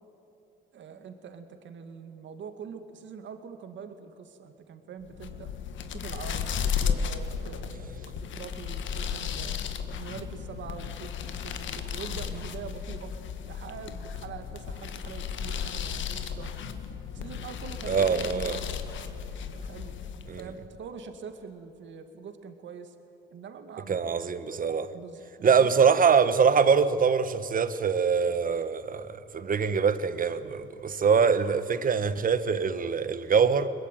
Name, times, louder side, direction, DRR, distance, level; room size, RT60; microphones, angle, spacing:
voice 1, 0.7-5.5 5.9-9.6 9.9-13.1 13.4-16.5 17.1-18.8 19.5-22.9 23.3-24.4 24.9-25.7, right 6 dB, 70° right, 2.2 m, -44 dB
sound 1, 5.1-20.6, left 7 dB, 70° left, 1.6 m, -34 dB
voice 2, 17.9-18.6 20.3-20.4 23.9-24.9 25.4-33.7, right 6 dB, 45° right, 1.4 m, -24 dB
22.5 x 21.5 x 9.3 m
cardioid pair, 90°, 20 cm